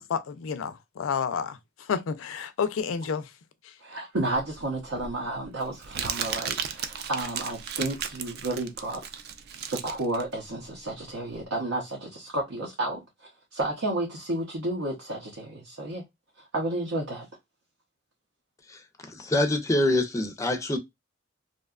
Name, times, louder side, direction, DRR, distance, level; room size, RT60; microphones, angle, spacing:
voice 1, 0.1-3.3 3.6-3.7, left 6 dB, 80° left, 0.4 m, -30 dB
voice 2, 3.8-9.0 9.7-16.0 16.5-17.3, right 2 dB, 80° right, 0.7 m, -31 dB
Crumpling crinkling, 4.3-11.4, right 7 dB, 55° right, 0.4 m, -35 dB
voice 3, 19.1-20.8, left 1 dB, 15° left, 0.4 m, -25 dB
2.6 x 2.2 x 2.3 m
head